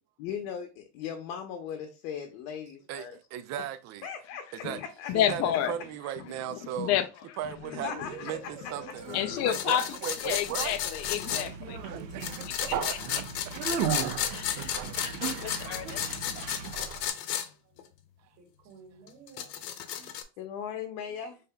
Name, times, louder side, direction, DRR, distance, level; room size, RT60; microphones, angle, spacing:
voice 1, 0.2-3.2 4.0-4.5 4.8-5.1 7.8-8.1 20.4-21.4, left 8 dB, 65° left, 0.9 m, -38 dB
voice 2, 3.3-4.1 4.5-4.8 5.1-6.9 7.4-7.9 8.2-9.1 9.4-10.8 11.9-13.0, right 10 dB, 35° right, 0.4 m, -37 dB
voice 3, 4.3-4.8 5.1-5.7 6.5-7.1 7.7-7.9 9.1-10.0 10.2-11.8 12.9-13.2 14.3-16.0, left 11 dB, 35° left, 0.4 m, -31 dB
Conversation, 7.6-17.1, right 8 dB, 90° right, 0.9 m, -36 dB
voice 4, 7.8-9.1 18.4-19.6 19.9-20.1, right 4 dB, 75° right, 1.9 m, -47 dB
sound 1, 9.5-11.5 12.2-17.5 17.8-17.9 19.1-20.2, left 10 dB, 90° left, 0.8 m, -33 dB
5.4 x 3.3 x 2.2 m
supercardioid pair, 125°, 49 cm